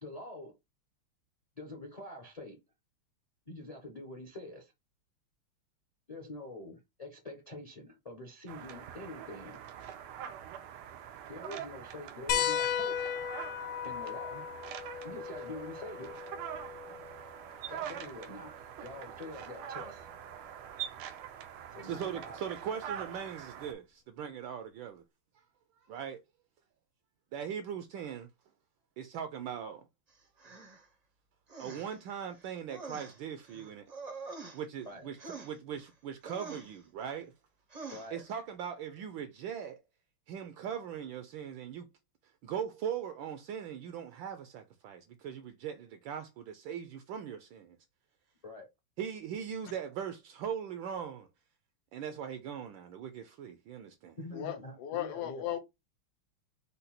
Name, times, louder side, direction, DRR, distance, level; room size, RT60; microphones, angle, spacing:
voice 1, 0.0-0.5 1.6-2.6 3.5-4.7 6.1-9.6 11.3-13.0 13.8-14.4 15.0-16.1 17.7-18.5 18.8-20.1 21.7-22.4 34.8-35.1 37.9-38.2 48.4-48.7 54.2-55.6, left 2 dB, 40° left, 0.5 m, -45 dB
sound 1, 8.5-23.7, right 9 dB, 90° right, 1.6 m, -44 dB
sound 2, 12.3-17.4 18.9-19.0 20.7-20.8, left 9 dB, 85° left, 1.5 m, -35 dB
voice 2, 21.8-25.0 25.8-26.2 27.3-28.3 29.0-29.9 31.6-33.9 34.5-35.2 35.4-37.3 38.1-39.8 40.3-41.9 42.4-47.8 49.0-51.3 51.9-54.2, right 8 dB, 75° right, 1.3 m, -40 dB
sound 3, 30.4-30.9 31.5-32.0 32.3-34.9 35.2-35.9 36.2-36.8 37.7-38.1, right 4 dB, 45° right, 0.5 m, -46 dB
voice 3, 54.3-55.6, left 12 dB, 60° left, 1.2 m, -36 dB
5.2 x 2.3 x 4.2 m
omnidirectional pair, 2.4 m